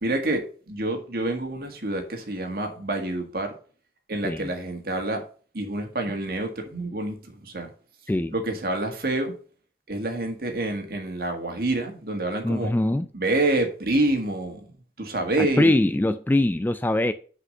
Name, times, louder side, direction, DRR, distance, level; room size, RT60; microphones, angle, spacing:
voice 1, 0.0-3.5 4.1-5.2 5.5-7.7 8.3-9.3 9.9-12.7 13.1-15.7, right 2 dB, 55° right, 1.8 m, -27 dB
voice 2, 12.4-13.1 15.4-17.1, left 1 dB, 10° left, 0.3 m, -22 dB
6.4 x 5.1 x 6.4 m
head